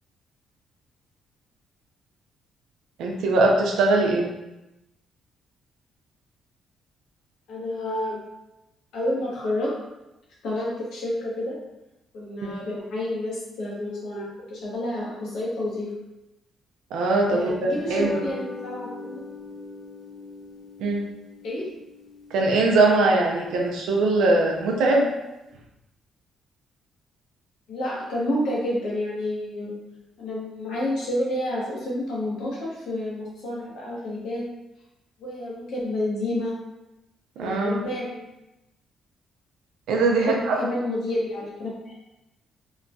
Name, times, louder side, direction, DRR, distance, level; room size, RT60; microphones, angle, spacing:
voice 1, 3.0-4.3 12.4-12.5 16.9-18.3 20.8-21.0 22.3-25.1 37.4-37.8 39.9-40.5, right 2 dB, 85° right, 0 dB, 0.5 m, -21 dB
voice 2, 7.5-8.2 8.9-9.7 10.4-11.6 12.1-15.9 17.3-19.3 21.4-21.7 27.7-29.7 30.2-34.4 35.2-36.5 37.4-38.1 40.1-42.0, left 1 dB, 80° left, -5 dB, 1.0 m, -29 dB
sound 1, 17.8-24.3, left 2 dB, 50° left, 0.8 m, -41 dB
2.9 x 2.2 x 2.6 m, 0.95 s
cardioid pair, 90°, 0 cm